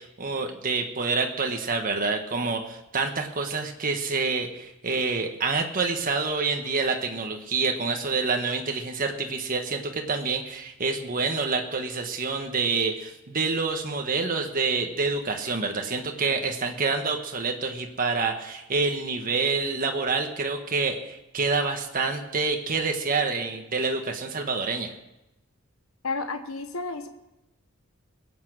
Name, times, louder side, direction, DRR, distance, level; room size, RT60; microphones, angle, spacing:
voice 1, 0.0-24.9, right 4 dB, 40° right, 3 dB, 1.4 m, -27 dB
voice 2, 26.0-27.1, left 3 dB, 80° left, 7 dB, 1.1 m, -31 dB
21.5 x 8.5 x 6.2 m, 0.93 s
head